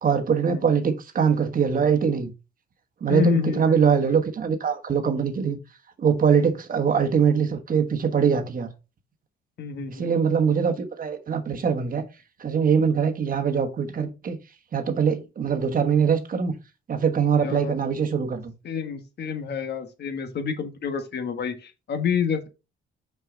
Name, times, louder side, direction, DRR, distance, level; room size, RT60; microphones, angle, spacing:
voice 1, 0.0-2.3 3.0-5.6 6.0-8.7 9.9-12.0 12.4-14.4 14.7-16.5 16.9-18.5, right 6 dB, 45° right, 1.3 m, -22 dB
voice 2, 3.1-3.7 4.0-4.1 9.6-10.1 17.4-17.7 18.6-22.5, left 7 dB, 55° left, 1.4 m, -28 dB
6.0 x 4.6 x 3.8 m
cardioid pair, 90°, 20 cm